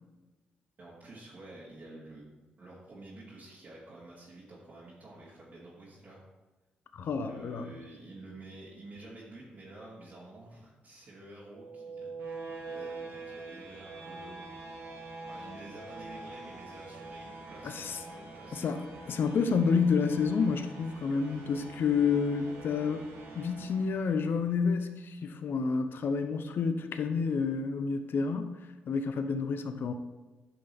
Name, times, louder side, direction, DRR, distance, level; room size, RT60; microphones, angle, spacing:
voice 1, 0.8-6.2 7.3-14.5 15.3-18.6, right 2 dB, 45° right, -9 dB, 2.9 m, -50 dB
voice 2, 6.9-7.7 17.6-18.0 18.5-23.1 23.3-28.6 28.9-29.9, left 5 dB, 65° left, 8 dB, 0.8 m, -29 dB
sound 1, 11.5-24.5, right 3 dB, 85° right, 1.8 m, -45 dB
10.0 x 5.8 x 3.6 m, 1.2 s
supercardioid pair, 60°, 4 cm